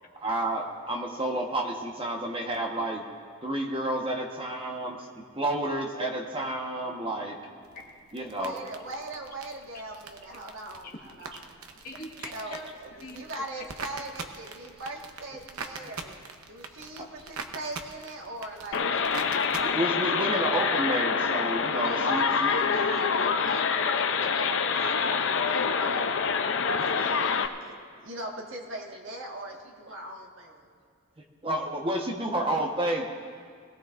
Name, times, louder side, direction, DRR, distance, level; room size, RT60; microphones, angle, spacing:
voice 1, 0.1-3.0 3.4-5.1 5.4-7.4 8.1-8.6 15.8-15.9 17.0-17.1 19.6-22.6 31.4-33.0, right 1 dB, 25° right, 1 dB, 1.2 m, -30 dB
voice 2, 7.0-8.0 10.8-11.3 11.8-12.7 13.0-13.2, left 1 dB, 40° left, -1 dB, 1.7 m, -44 dB
sound 1, 7.6-19.6, right 4 dB, 90° right, 0.9 m, -43 dB
voice 3, 8.3-11.6 12.3-12.6 13.0-19.1 21.8-26.1 26.6-30.7, right 1 dB, 65° right, 0 dB, 1.6 m, -40 dB
sound 2, 18.7-27.5, left 5 dB, 60° left, 0.6 m, -26 dB
21.0 x 16.5 x 2.6 m, 2.1 s
head